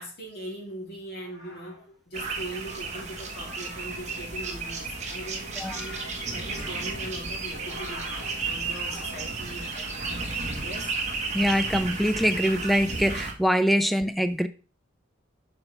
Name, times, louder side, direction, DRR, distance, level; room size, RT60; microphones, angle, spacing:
voice 1, 0.0-6.0 6.3-10.3 10.6-10.9, right 1 dB, 55° left, -1 dB, 3.0 m, -40 dB
sound 1, 1.0-9.7, equal, 90° left, 3.9 m, -46 dB
sound 2, 2.1-13.3, right 4 dB, 35° right, 1.4 m, -33 dB
voice 2, 11.3-14.5, equal, ahead, 11 dB, 0.3 m, -24 dB
8.5 x 5.5 x 3.3 m, 0.36 s
head